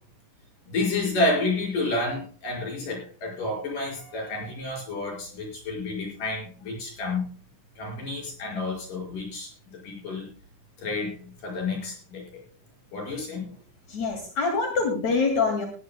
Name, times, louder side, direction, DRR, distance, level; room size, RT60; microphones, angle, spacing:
voice 1, 0.7-7.3 7.8-10.3 10.8-12.4 12.9-13.5, left 2 dB, 90° left, -1 dB, 6.9 m, -30 dB
voice 2, 13.9-15.7, left 4 dB, 60° left, 3 dB, 3.4 m, -25 dB
20.0 x 15.0 x 2.2 m, 0.40 s
omnidirectional pair, 3.7 m